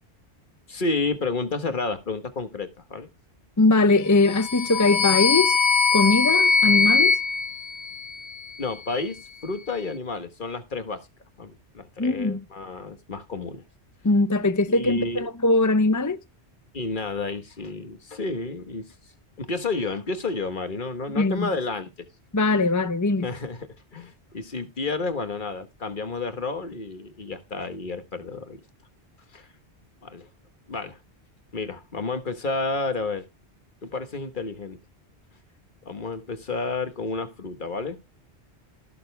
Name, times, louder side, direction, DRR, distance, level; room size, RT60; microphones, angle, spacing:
voice 1, 0.7-3.1 8.6-11.0 11.4-13.6 14.7-15.3 16.7-18.9 19.4-22.1 23.2-28.6 29.3-29.5 30.0-30.3 30.7-31.0 31.5-33.2 33.8-34.8 35.8-38.0, left 3 dB, 45° left, 1.5 m, -31 dB
voice 2, 3.6-5.6 5.9-7.1 12.0-12.4 14.0-16.2 21.2-21.5 22.3-23.3, left 2 dB, 20° left, 0.6 m, -21 dB
sound 1, 4.2-8.5, left 5 dB, 75° left, 1.1 m, -22 dB
16.5 x 6.8 x 3.4 m
omnidirectional pair, 1.1 m